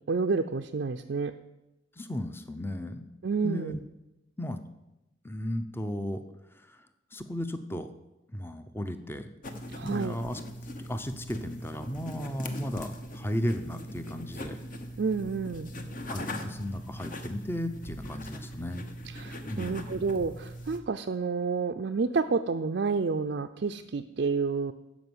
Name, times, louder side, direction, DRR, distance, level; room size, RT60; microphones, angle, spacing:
voice 1, 0.1-1.3 3.2-3.7 9.7-10.1 15.0-15.7 19.1-24.7, right 4 dB, 55° right, 5 dB, 0.4 m, -29 dB
voice 2, 2.0-3.1 3.4-3.8 4.4-4.6 5.2-6.2 6.5-6.9 7.1-7.9 8.3-9.3 9.8-10.4 10.9-14.6 16.1-18.9 19.5-20.0, left 1 dB, 10° left, 9 dB, 0.6 m, -35 dB
sound 1, 9.4-20.8, equal, 45° left, 1.0 m, -41 dB
12.5 x 5.2 x 7.9 m, 0.96 s
head